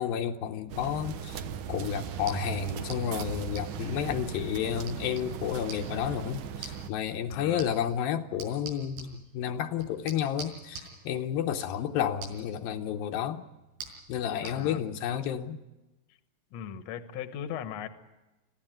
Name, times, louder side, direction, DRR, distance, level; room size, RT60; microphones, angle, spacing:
voice 1, 0.0-1.4 1.7-13.4 14.1-15.6, left 9 dB, 80° left, 2.7 m, -31 dB
sound 1, 0.7-6.9, right 7 dB, 70° right, 2.1 m, -37 dB
sound 2, 2.1-14.6, right 4 dB, 85° right, 7.2 m, -48 dB
voice 2, 7.3-7.8 14.4-14.8 16.5-17.9, left 9 dB, 60° left, 2.0 m, -38 dB
25.5 x 15.5 x 9.0 m
omnidirectional pair, 4.3 m